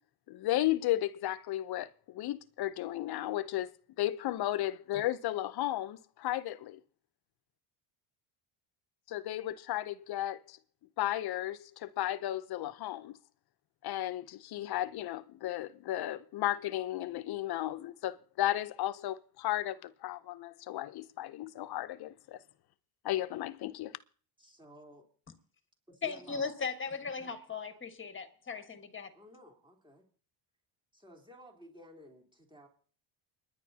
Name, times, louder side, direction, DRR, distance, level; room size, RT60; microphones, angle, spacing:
voice 1, 0.3-3.7 4.0-6.8 9.1-10.6 11.0-13.2 13.8-22.4 23.0-24.0, left 14 dB, 50° left, 0.7 m, -34 dB
voice 2, 24.4-25.0 25.9-26.5 29.1-30.0 30.9-32.7, equal, 10° right, 3.3 m, -55 dB
voice 3, 26.0-29.1, left 5 dB, 25° left, 1.4 m, -38 dB
29.0 x 10.5 x 2.8 m
cardioid pair, 115°, 50 cm